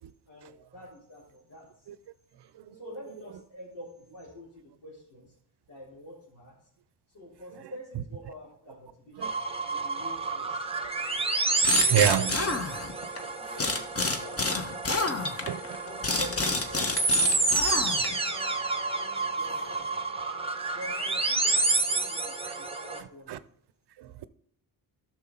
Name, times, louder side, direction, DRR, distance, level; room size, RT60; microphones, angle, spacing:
voice 1, 0.3-1.9 2.7-5.4 5.7-6.6 7.1-10.7 11.9-12.3 13.2-15.3 15.7-18.1 19.3-20.0 20.7-23.4, equal, 85° left, 3.6 m, -47 dB
sound 1, 9.2-23.0, right 3 dB, 15° right, 0.9 m, -29 dB
voice 2, 11.1-12.5 13.2-13.4 15.5-15.8 20.5-20.8 23.3-23.4 24.0-24.3, right 11 dB, 65° right, 0.6 m, -30 dB
sound 2, 11.6-13.2 13.6-18.3, left 3 dB, 35° left, 1.2 m, -29 dB
Wind instrument woodwind instrument, 16.2-20.8, equal, 60° left, 2.3 m, -49 dB
12.0 x 6.3 x 3.9 m
supercardioid pair, 50°, 43 cm